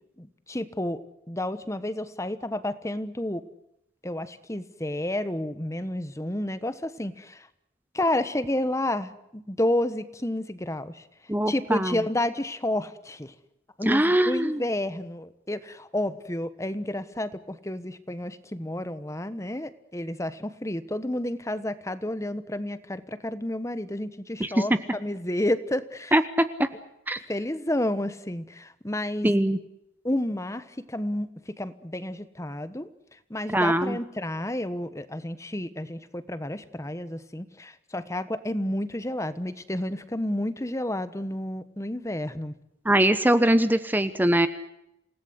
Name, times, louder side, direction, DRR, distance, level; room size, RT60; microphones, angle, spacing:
voice 1, 0.2-1.0 1.3-3.4 4.0-7.5 7.9-11.0 11.5-13.3 13.8-26.1 27.3-29.3 30.0-32.9 33.3-42.5, left 1 dB, 15° left, 13 dB, 1.2 m, -30 dB
voice 2, 11.3-12.0 13.9-14.6 24.4-24.6 26.1-26.7 27.1-27.2 29.2-29.6 33.5-34.0 42.8-44.5, right 1 dB, 10° right, 11 dB, 0.9 m, -22 dB
28.0 x 18.0 x 8.1 m, 0.82 s
head